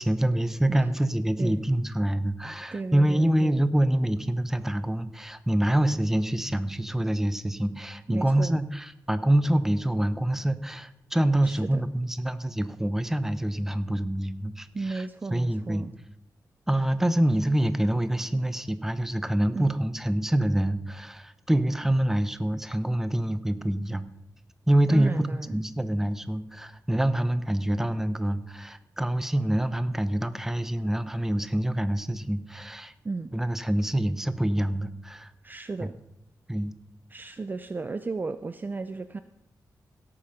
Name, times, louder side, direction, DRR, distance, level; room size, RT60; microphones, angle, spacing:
voice 1, 0.0-15.9 16.7-24.0 24.7-32.9 33.3-35.3 35.8-35.9 36.5-36.7, right 1 dB, 5° right, 12 dB, 0.8 m, -26 dB
voice 2, 2.7-3.6 8.1-8.6 11.4-11.8 14.7-15.9 19.5-19.7 24.9-25.6 33.0-33.3 35.4-35.9 37.1-39.2, right 3 dB, 25° right, 11 dB, 0.5 m, -34 dB
17.0 x 8.7 x 5.8 m, 0.84 s
wide cardioid pair, 130°, 7 cm